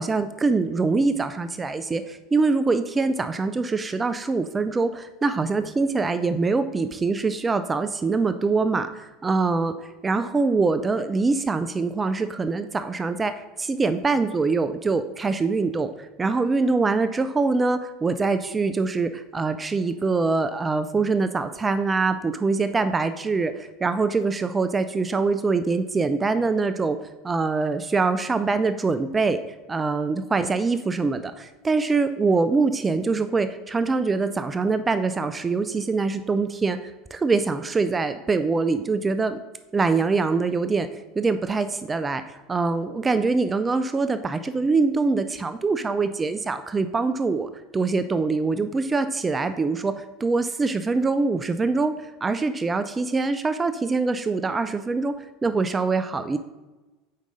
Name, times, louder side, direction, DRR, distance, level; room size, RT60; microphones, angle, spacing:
voice 1, 0.0-9.7 10.0-27.0 27.2-39.4 39.7-55.1 55.4-56.4, right 4 dB, 20° right, 10 dB, 0.3 m, -24 dB
5.2 x 4.7 x 3.9 m, 1.1 s
hypercardioid pair, 80°, 0 cm